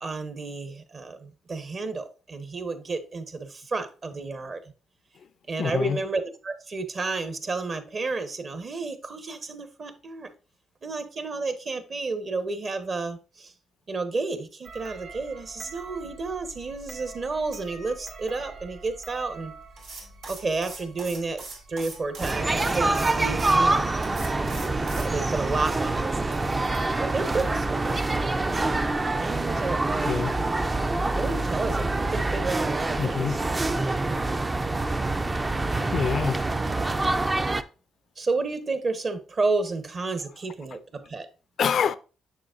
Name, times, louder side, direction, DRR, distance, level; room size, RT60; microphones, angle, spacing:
voice 1, 0.0-4.6 5.5-10.3 10.8-13.5 13.9-19.5 20.3-21.4 21.7-24.0 24.7-26.4 27.0-28.5 29.2-30.2 31.2-33.4 38.2-41.3, right 3 dB, 40° right, 1.0 m, -31 dB
voice 2, 5.6-6.0 30.1-30.3 33.0-33.4 35.8-36.5 41.6-42.0, left 7 dB, 60° left, 0.4 m, -26 dB
sound 1, 14.6-27.2, right 4 dB, 70° right, 1.7 m, -44 dB
sound 2, 19.8-23.6 24.0-25.1, right 3 dB, 85° right, 3.2 m, -41 dB
sound 3, 22.2-37.6, right 2 dB, 20° right, 0.4 m, -26 dB
6.9 x 6.6 x 2.5 m
cardioid pair, 90°, 0 cm